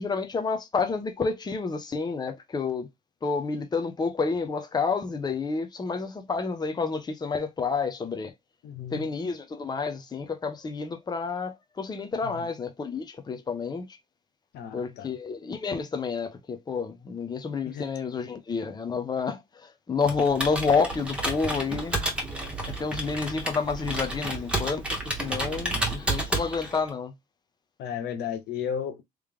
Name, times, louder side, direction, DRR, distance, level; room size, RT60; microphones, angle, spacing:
voice 1, 0.0-2.9 3.2-8.3 8.9-13.9 14.7-22.0 22.7-27.1, left 5 dB, 25° left, 0.9 m, -29 dB
voice 2, 8.6-9.1 12.2-12.5 14.5-15.1 17.6-17.9 27.8-29.0, left 8 dB, 75° left, 1.0 m, -34 dB
Computer keyboard, 20.0-26.9, right 1 dB, 5° right, 1.6 m, -31 dB
3.3 x 3.2 x 3.5 m
cardioid pair, 110°, 17 cm